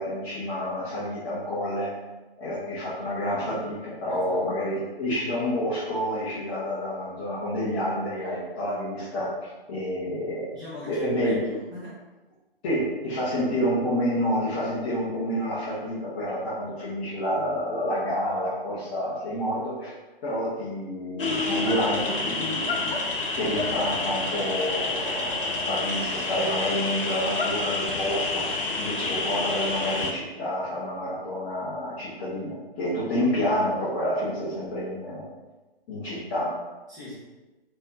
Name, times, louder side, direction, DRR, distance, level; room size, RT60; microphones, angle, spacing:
voice 1, 0.0-1.9 2.4-9.3 9.7-10.5 10.8-11.4 12.6-19.9 20.2-22.9 23.4-35.3 35.9-36.5, equal, 15° left, -9 dB, 0.7 m, -29 dB
voice 2, 4.1-4.4 10.5-12.0 18.3-18.4 36.9-37.2, left 1 dB, 10° right, -10 dB, 1.1 m, -40 dB
sound 1, 21.2-30.1, left 3 dB, 65° left, 0.8 m, -28 dB
4.2 x 3.0 x 3.5 m, 1.2 s
figure-of-eight pair, 135°, 30 cm